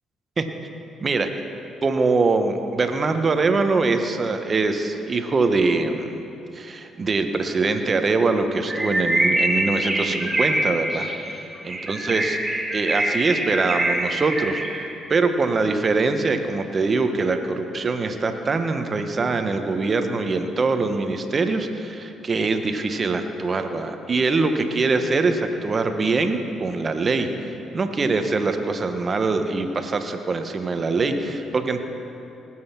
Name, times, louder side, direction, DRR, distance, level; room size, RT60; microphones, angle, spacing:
voice 1, 1.0-1.3 1.8-6.2 6.5-11.1 11.6-12.4 12.7-31.8, right 3 dB, 40° right, 7 dB, 1.3 m, -23 dB
Bird, 8.7-15.0, right 1 dB, 20° right, 2.4 m, -24 dB
19.5 x 7.9 x 5.9 m, 2.8 s
hypercardioid pair, 45°, 0 cm